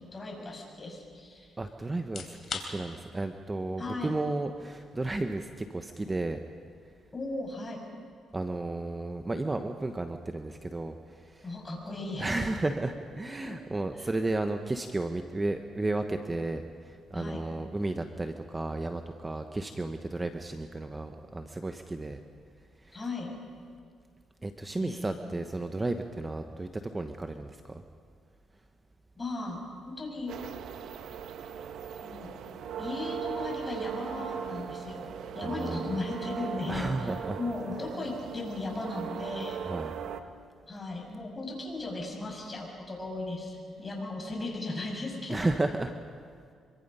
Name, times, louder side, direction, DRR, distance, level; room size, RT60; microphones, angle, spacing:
voice 1, 0.0-1.5 3.8-4.1 7.1-7.8 11.4-12.3 13.4-13.6 13.9-14.1 17.1-17.4 22.9-23.3 24.8-25.2 29.2-29.6 29.8-30.3 32.0-32.4 32.8-39.6 40.7-45.5, left 2 dB, 25° left, 0 dB, 6.6 m, -37 dB
voice 2, 1.6-6.4 8.3-11.5 12.2-22.2 22.8-23.0 24.4-27.8 35.4-36.0 36.7-37.4 39.7-39.9 45.3-46.0, right 2 dB, 20° right, 7 dB, 1.0 m, -33 dB
sound 1, 2.0-16.8, left 5 dB, 50° left, 3.5 m, -50 dB
sound 2, 30.3-40.2, right 8 dB, 75° right, 1.2 m, -38 dB
26.0 x 23.5 x 5.6 m, 2.1 s
cardioid pair, 90°, 0 cm